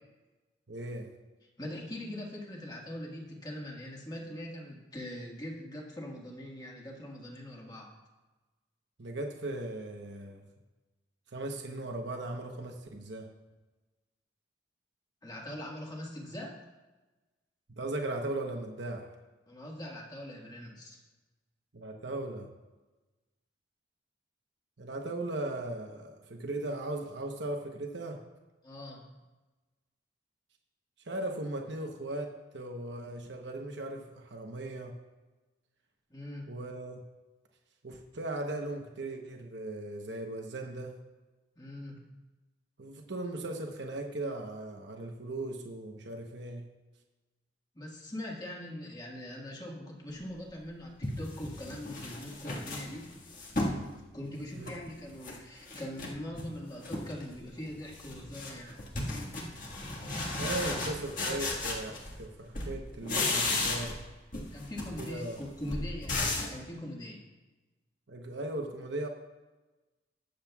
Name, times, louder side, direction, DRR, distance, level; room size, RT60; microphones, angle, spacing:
voice 1, 0.7-1.1 9.0-10.4 11.3-13.3 17.7-19.1 21.7-22.5 24.8-28.2 31.1-35.0 36.5-37.1 37.8-41.0 42.8-46.7 54.5-54.7 60.4-64.0 65.0-65.4 68.1-69.1, right 2 dB, 65° right, 2 dB, 1.0 m, -38 dB
voice 2, 1.6-7.9 15.2-16.5 19.5-21.0 28.6-29.2 36.1-36.5 41.6-42.0 47.7-53.1 54.1-58.8 64.5-67.3, left 1 dB, 20° left, -2 dB, 1.7 m, -42 dB
sound 1, 50.4-50.5 51.0-53.8 54.3-55.4 55.7-56.5 56.8-57.3 57.6-62.3 62.5-64.1 64.3-66.6, left 2 dB, 45° left, 1.7 m, -35 dB
20.5 x 7.5 x 2.4 m, 1.2 s
head